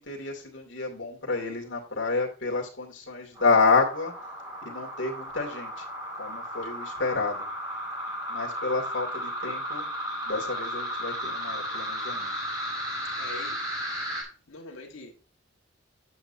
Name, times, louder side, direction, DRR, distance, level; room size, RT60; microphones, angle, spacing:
voice 1, 0.0-4.1 4.6-5.8 6.2-7.4 8.3-9.9 10.3-12.3, left 4 dB, 60° left, 2.3 m, -29 dB
sound 1, 3.4-14.2, equal, 20° right, 4.0 m, -34 dB
voice 2, 13.2-13.9 14.5-15.1, left 3 dB, 80° left, 1.6 m, -43 dB
8.7 x 8.4 x 2.7 m
head